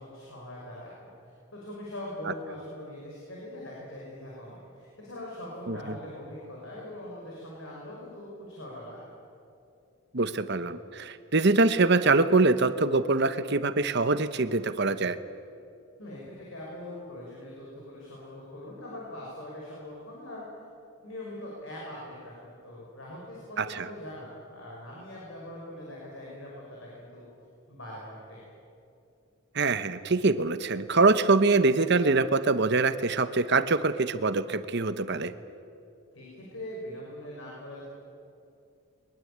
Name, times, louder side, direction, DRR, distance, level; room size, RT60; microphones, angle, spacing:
voice 1, 0.0-9.1 16.0-20.4 21.0-27.3 27.7-28.4 36.1-37.8, left 1 dB, 65° left, -4 dB, 6.1 m, -42 dB
voice 2, 10.1-15.2 23.6-23.8 29.5-35.3, right 3 dB, 55° right, 12 dB, 1.0 m, -24 dB
22.5 x 22.0 x 8.8 m, 2.5 s
head